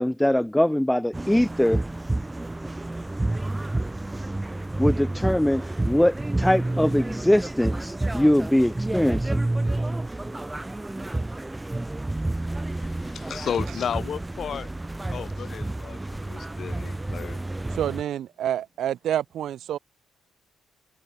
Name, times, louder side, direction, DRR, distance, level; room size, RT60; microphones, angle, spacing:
voice 1, 0.0-1.8 4.8-9.4, left 1 dB, 5° left, 1.1 m, -22 dB
sound 1, 1.1-18.0, right 2 dB, 15° right, 2.1 m, -29 dB
voice 2, 12.7-14.7 15.1-17.4, left 8 dB, 55° left, 1.7 m, -33 dB
voice 3, 17.7-19.8, right 11 dB, 70° right, 1.0 m, -28 dB
cardioid pair, 90°, 0 cm